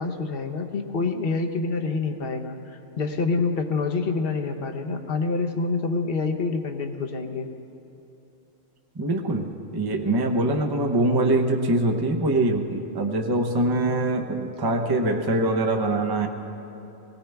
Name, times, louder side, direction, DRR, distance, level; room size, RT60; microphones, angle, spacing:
voice 1, 0.0-2.6 3.0-7.5, left 4 dB, 50° left, 5 dB, 1.0 m, -27 dB
voice 2, 9.0-9.5 9.7-16.3, right 2 dB, 20° right, 3 dB, 0.7 m, -23 dB
18.5 x 17.5 x 3.4 m, 3.0 s
omnidirectional pair, 1.4 m